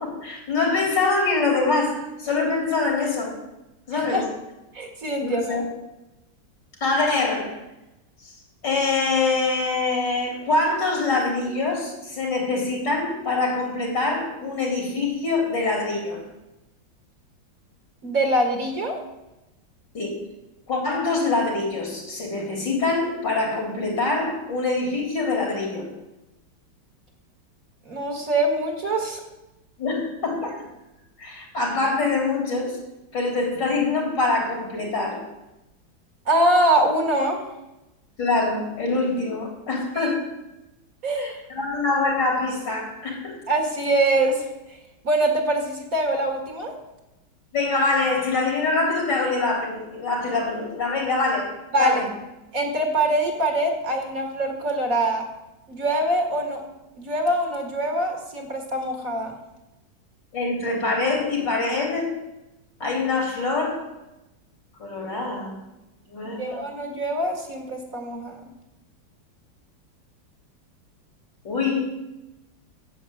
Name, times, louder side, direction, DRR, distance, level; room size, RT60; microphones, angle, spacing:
voice 1, 0.0-3.4 3.9-4.3 5.2-5.6 6.8-7.5 8.2-8.3 8.6-16.2 19.9-20.2 20.7-25.9 29.8-30.6 31.2-32.8 33.1-35.2 38.2-40.2 41.2-43.4 47.5-51.5 51.8-52.1 60.3-62.1 62.8-63.8 64.8-65.5 66.1-66.7 71.4-71.9, left 3 dB, 65° left, 0 dB, 4.2 m, -24 dB
voice 2, 4.7-5.6 18.0-19.0 27.9-29.2 36.3-37.4 40.0-40.1 41.0-41.3 43.5-44.5 45.0-46.7 51.7-52.0 52.5-55.2 55.7-56.6 57.0-59.4 66.4-68.4, right 1 dB, 45° right, 3 dB, 2.2 m, -23 dB
11.0 x 7.8 x 7.8 m, 0.97 s
omnidirectional pair, 2.1 m